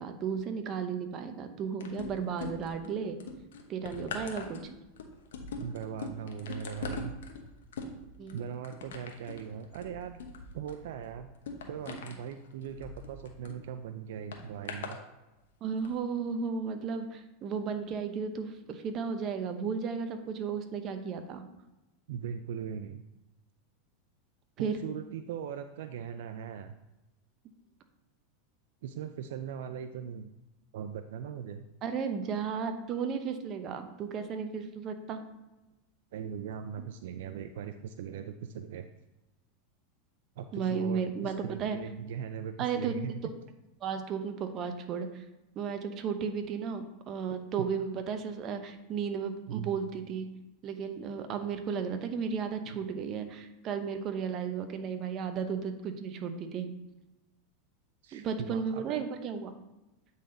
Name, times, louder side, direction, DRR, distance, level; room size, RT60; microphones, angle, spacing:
voice 1, 0.0-3.2 3.7-4.6 8.2-8.4 15.6-21.5 24.6-24.8 31.8-35.2 40.5-41.8 42.6-43.0 43.8-45.2 45.6-50.3 50.6-56.7 58.1-59.5, right 6 dB, 40° right, 7 dB, 0.8 m, -34 dB
sound 1, 1.8-2.9 3.2-13.6 14.3-15.0 15.7-15.9, left 4 dB, 85° left, 0.9 m, -42 dB
voice 2, 5.6-7.1 8.3-10.2 10.5-11.3 11.7-15.0 22.1-23.0 24.6-26.7 28.8-30.3 30.7-31.6 36.1-38.9 40.4-43.2 47.6-47.7 49.5-49.7 52.7-52.8 58.0-59.1, right 8 dB, 75° right, 8 dB, 0.3 m, -39 dB
8.3 x 4.0 x 3.8 m, 0.99 s
supercardioid pair, 120°, 0 cm